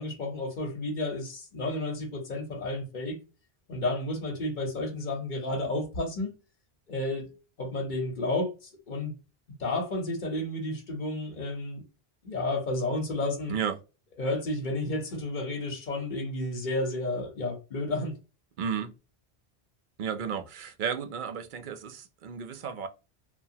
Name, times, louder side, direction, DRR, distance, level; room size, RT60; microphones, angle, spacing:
voice 1, 0.0-3.2 3.7-6.4 6.9-7.3 7.6-9.1 9.6-11.8 12.2-13.5 14.2-18.1, left 2 dB, 50° left, 1.0 m, -31 dB
voice 2, 18.6-18.9 20.0-22.9, right 7 dB, 60° right, 0.6 m, -33 dB
2.8 x 2.3 x 2.7 m
omnidirectional pair, 1.0 m